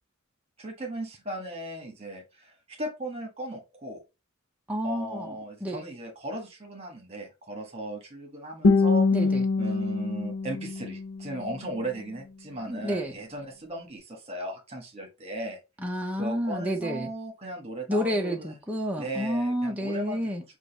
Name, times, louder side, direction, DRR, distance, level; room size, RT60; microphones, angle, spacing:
voice 1, 0.6-4.0 4.8-9.1 9.6-15.6 16.1-18.6 19.0-20.2, right 1 dB, 25° right, 1.2 m, -37 dB
voice 2, 4.7-5.4 5.6-5.8 9.1-9.4 12.7-13.1 15.8-17.1 17.9-20.4, equal, 5° right, 0.5 m, -29 dB
Guitar, 8.6-11.7, left 3 dB, 70° left, 0.6 m, -24 dB
5.1 x 2.4 x 3.9 m
head